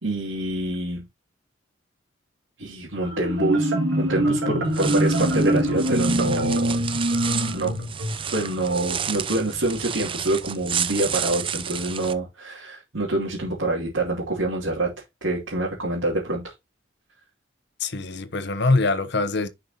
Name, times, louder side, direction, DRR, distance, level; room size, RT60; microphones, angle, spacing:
voice 1, 0.0-1.1 2.6-6.8 7.5-7.7 8.3-14.9 15.2-16.5, right 2 dB, 85° right, 2.7 m, -26 dB
Marimba xylophone, 3.0-8.6, right 1 dB, 70° right, 2.3 m, -23 dB
sound 1, 4.6-12.1, right 8 dB, 30° right, 0.5 m, -31 dB
voice 2, 17.8-19.5, left 3 dB, 65° left, 0.9 m, -23 dB
10.5 x 5.5 x 2.9 m
head